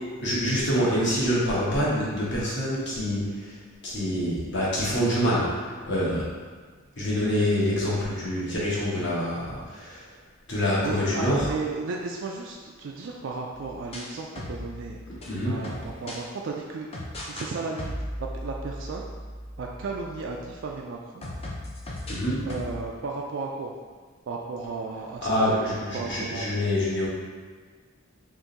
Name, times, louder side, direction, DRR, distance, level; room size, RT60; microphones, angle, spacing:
voice 1, 0.2-3.6 3.8-6.3 7.0-10.1 10.5-11.5 15.2-15.6 22.1-22.5 25.2-27.1, equal, 55° left, -7 dB, 1.1 m, -26 dB
voice 2, 10.8-15.0 15.4-16.9 17.2-17.9 18.2-19.1 19.6-21.2 22.4-23.7 24.3-25.6 25.9-26.5, right 4 dB, 55° right, -1 dB, 0.3 m, -34 dB
sound 1, 13.5-16.2 16.9-17.5 17.8-20.8 21.2-22.8, left 1 dB, 25° left, 0.5 m, -38 dB
3.6 x 2.5 x 4.0 m, 1.5 s
head